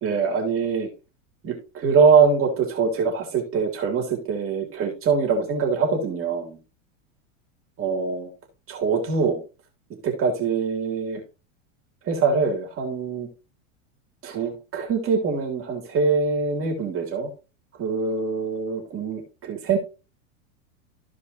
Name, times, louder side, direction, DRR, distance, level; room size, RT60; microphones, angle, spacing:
voice 1, 0.0-0.9 1.4-6.6 7.8-8.3 8.7-9.4 10.0-11.2 12.0-13.3 14.2-17.3 17.8-19.8, right 5 dB, 35° right, 1 dB, 2.9 m, -23 dB
14.5 x 4.9 x 2.8 m, 0.31 s
supercardioid pair, 120°, 38 cm